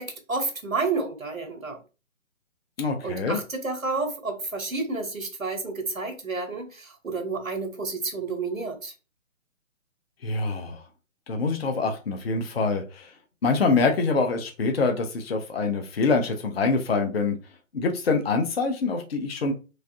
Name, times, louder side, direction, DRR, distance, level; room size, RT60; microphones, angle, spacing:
voice 1, 0.0-1.8 3.0-8.9, right 3 dB, 90° right, 1.0 m, -30 dB
voice 2, 2.8-3.4 10.2-10.8 11.3-13.1 13.4-17.4 17.7-19.5, left 4 dB, 50° left, 0.7 m, -25 dB
3.2 x 2.5 x 2.6 m
figure-of-eight pair, 135°, 40 cm